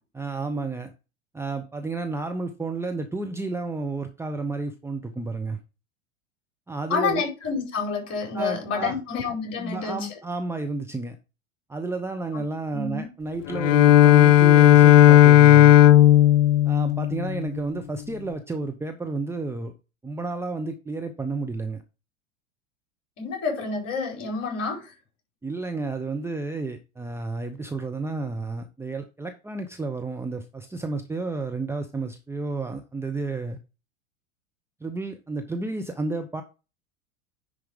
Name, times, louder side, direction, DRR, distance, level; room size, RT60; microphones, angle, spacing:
voice 1, 0.1-0.9 1.3-5.6 6.7-7.2 8.3-9.0 9.6-11.2 11.7-15.8 16.6-19.7 20.0-21.8 25.4-33.6 34.8-36.4, right 3 dB, 5° right, 0.8 m, -31 dB
voice 2, 6.9-10.1 12.3-12.4 12.7-13.1 23.2-24.9, left 4 dB, 40° left, 4.7 m, -28 dB
Bowed string instrument, 13.5-17.6, left 12 dB, 75° left, 0.6 m, -14 dB
10.5 x 4.7 x 3.6 m
figure-of-eight pair, 90°, 37 cm